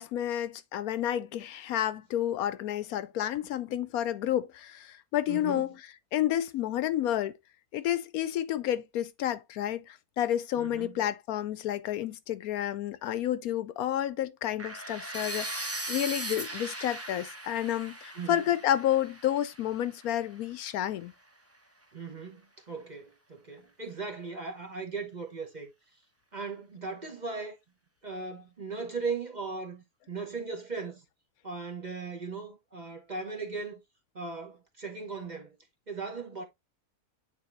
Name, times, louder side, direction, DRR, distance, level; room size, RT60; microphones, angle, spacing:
voice 1, 0.0-5.8 6.1-7.3 7.7-21.1, left 11 dB, 75° left, 1.0 m, -30 dB
voice 2, 5.3-5.7 10.6-11.0 18.1-18.4 21.9-25.7 26.3-27.6 28.0-31.0 31.4-33.8 34.1-35.6 35.9-36.4, right 4 dB, 35° right, 1.0 m, -38 dB
sound 1, 14.6-20.5, right 2 dB, 15° right, 0.7 m, -39 dB
8.9 x 3.6 x 3.0 m
omnidirectional pair, 1.6 m